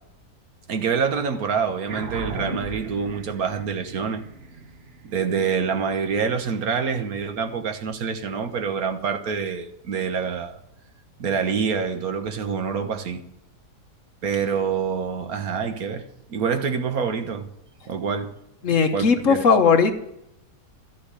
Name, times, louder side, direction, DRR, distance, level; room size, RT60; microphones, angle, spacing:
voice 1, 0.7-4.2 5.0-10.6 11.2-13.2 14.2-16.0 16.3-17.5 17.9-18.4 18.7-19.5, right 6 dB, 65° right, 1.6 m, -26 dB
sound 1, 1.9-6.6, right 3 dB, 45° right, 1.3 m, -37 dB
voice 2, 18.6-20.0, left 5 dB, 55° left, 1.3 m, -18 dB
13.0 x 6.9 x 9.5 m
omnidirectional pair, 1.7 m